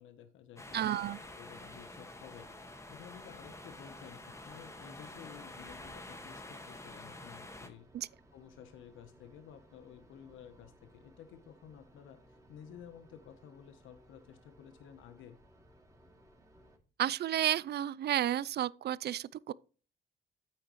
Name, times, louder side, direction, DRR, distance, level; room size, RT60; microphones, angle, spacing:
voice 1, 0.0-15.4, left 9 dB, 85° left, 1.0 m, -53 dB
sound 1, 0.6-7.7, left 2 dB, 15° left, 1.7 m, -48 dB
voice 2, 0.7-1.2 7.9-8.1 17.0-19.5, right 12 dB, 55° right, 0.5 m, -32 dB
sound 2, 1.2-16.8, equal, 15° right, 2.7 m, -62 dB
9.0 x 8.9 x 3.1 m
cardioid pair, 90°, 20 cm